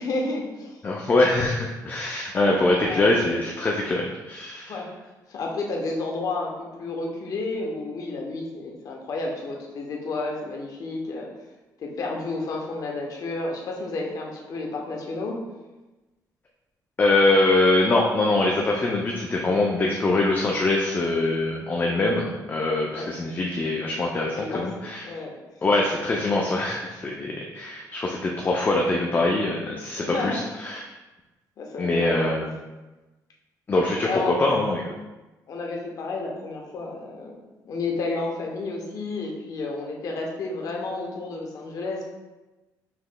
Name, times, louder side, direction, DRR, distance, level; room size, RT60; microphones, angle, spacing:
voice 1, 0.0-0.8 2.8-3.4 4.7-4.9 5.3-11.3 11.8-15.4 22.9-23.1 24.4-24.6 25.0-25.4 30.0-30.4 31.6-32.3 34.0-34.5 35.5-37.4 37.6-42.1, left 3 dB, 55° left, -1 dB, 0.8 m, -31 dB
voice 2, 0.8-4.7 17.0-25.1 25.6-30.9 31.8-32.5 33.7-34.8, left 2 dB, 25° left, -1 dB, 0.4 m, -23 dB
5.7 x 3.0 x 2.2 m, 1.1 s
cardioid pair, 110°, 7 cm